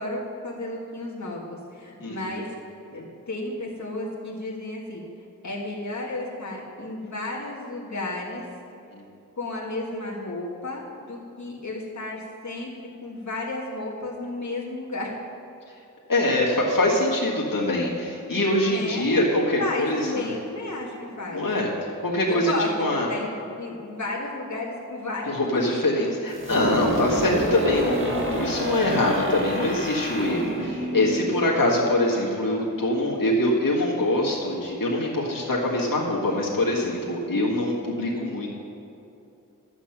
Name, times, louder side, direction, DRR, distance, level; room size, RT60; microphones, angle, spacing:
voice 1, 0.0-2.6 2.9-5.0 5.4-8.5 9.4-15.1 18.7-19.1 19.6-21.5 22.2-25.7 31.3-31.4, left 2 dB, 60° left, -4 dB, 1.8 m, -33 dB
voice 2, 2.0-2.4 8.9-9.0 16.1-20.3 21.3-21.7 22.0-22.5 22.8-23.1 25.3-38.5, left 1 dB, 80° left, -4 dB, 1.8 m, -24 dB
sound 1, 26.3-32.0, equal, 35° right, 1.8 m, -29 dB
11.0 x 8.1 x 5.9 m, 2.8 s
wide cardioid pair, 60°, 33 cm